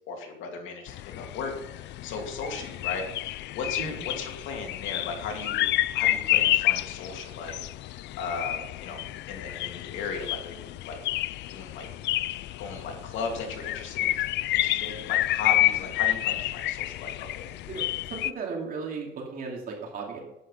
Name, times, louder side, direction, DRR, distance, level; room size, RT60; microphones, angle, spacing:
voice 1, 0.1-5.7 5.9-7.7 8.2-9.0 9.3-11.0 11.5-11.9 12.6-14.1 14.5-17.5, left 5 dB, 80° left, 2 dB, 2.7 m, -36 dB
sound 1, 0.9-18.3, left 15 dB, 65° left, 0.4 m, -29 dB
voice 2, 18.1-20.2, right 5 dB, 45° right, 0 dB, 2.8 m, -35 dB
11.0 x 9.2 x 5.6 m, 0.90 s
cardioid pair, 140°, 20 cm